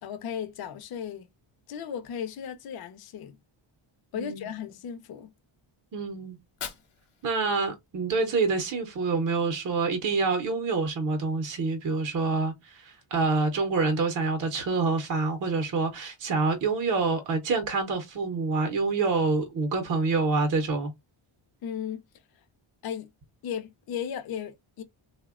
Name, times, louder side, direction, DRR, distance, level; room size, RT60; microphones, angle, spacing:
voice 1, 0.0-1.3 1.7-3.4 4.1-5.3 21.6-22.0 22.3-22.4 22.8-23.1 23.4-24.8, left 8 dB, 50° left, 0.5 m, -36 dB
voice 2, 4.1-4.5 5.9-6.4 7.2-20.9, right 4 dB, 40° right, 0.6 m, -27 dB
Fire, 6.3-8.3, left 7 dB, 75° left, 0.9 m, -44 dB
3.3 x 2.1 x 2.3 m
wide cardioid pair, 170°, 49 cm